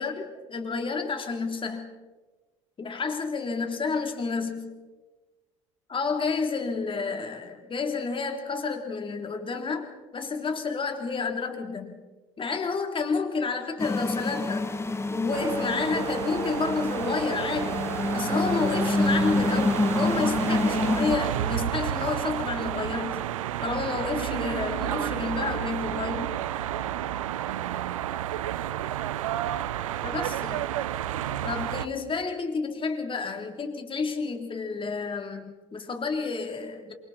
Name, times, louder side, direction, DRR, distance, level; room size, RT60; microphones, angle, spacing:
voice 1, 0.0-1.9 2.8-4.7 5.9-12.0 12.4-14.7 15.1-17.9 18.1-23.3 23.6-26.4 30.0-30.6 31.4-36.9, left 4 dB, 30° left, 4 dB, 3.6 m, -30 dB
sound 1, 13.8-21.1, left 2 dB, 15° left, 1.6 m, -27 dB
sound 2, 15.3-31.9, right 12 dB, 80° right, 0.7 m, -31 dB
28.0 x 24.0 x 4.4 m, 1.2 s
hypercardioid pair, 65°, 17 cm